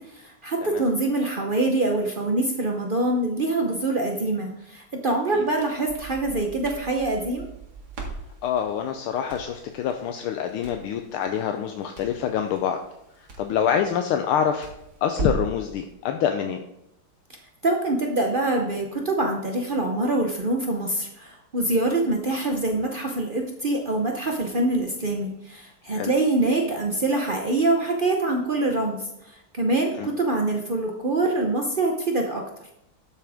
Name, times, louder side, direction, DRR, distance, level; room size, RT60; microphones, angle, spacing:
voice 1, 0.1-7.5 17.6-32.4, right 2 dB, 85° right, 2 dB, 0.4 m, -25 dB
Crackle, 5.4-15.6, right 3 dB, 50° right, 2.2 m, -39 dB
voice 2, 8.4-12.8 13.2-14.7 15.0-16.6 25.9-26.1 30.0-30.1, left 8 dB, 80° left, 5 dB, 1.5 m, -26 dB
12.0 x 7.4 x 3.5 m, 0.82 s
omnidirectional pair, 2.4 m